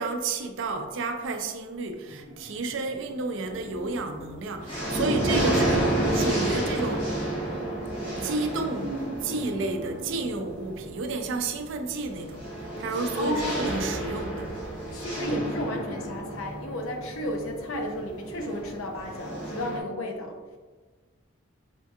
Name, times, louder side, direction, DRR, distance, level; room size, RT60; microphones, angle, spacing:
voice 1, 0.0-7.1 8.2-12.5 12.8-14.5, right 3 dB, 70° right, 0.4 m, -31 dB
sound 1, 2.0-11.2 11.5-11.6, right 1 dB, 30° right, 0.8 m, -42 dB
sound 2, 3.4-4.0 4.4-19.8, right 1 dB, 30° left, 1.1 m, -31 dB
voice 2, 13.1-13.9 14.9-20.4, left 1 dB, 90° left, 0.5 m, -32 dB
4.4 x 2.6 x 2.3 m
head